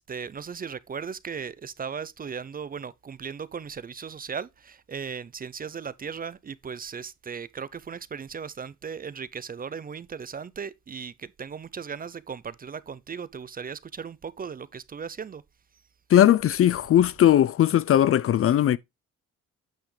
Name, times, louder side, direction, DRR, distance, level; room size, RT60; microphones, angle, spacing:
voice 1, 0.0-15.4, right 6 dB, 30° right, 0.5 m, -37 dB
voice 2, 16.1-18.8, left 11 dB, 50° left, 0.5 m, -19 dB
9.1 x 5.6 x 3.2 m
cardioid pair, 90°, 30 cm